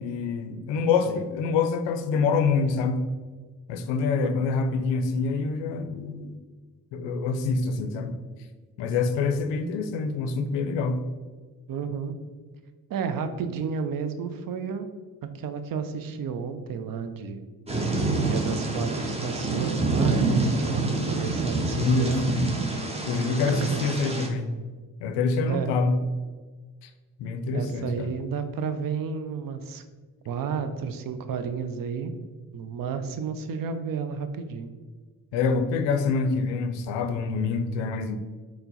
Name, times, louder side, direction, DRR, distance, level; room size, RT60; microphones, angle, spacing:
voice 1, 0.0-3.0 3.7-6.4 6.9-8.2 8.8-11.0 21.8-22.5 23.1-24.5 25.0-26.0 26.8-26.9 27.2-28.1 35.3-38.2, left 4 dB, 75° left, 9 dB, 0.5 m, -26 dB
voice 2, 4.2-4.5 11.7-12.1 12.9-14.9 15.2-17.4 18.2-22.3 23.5-23.8 25.5-25.7 27.5-29.8 30.3-32.1 32.5-34.7, right 6 dB, 50° right, 9 dB, 0.5 m, -32 dB
Thunder / Rain, 17.7-24.3, right 2 dB, 15° right, 0.7 m, -27 dB
4.3 x 2.1 x 4.0 m, 1.4 s
hypercardioid pair, 45°, 45 cm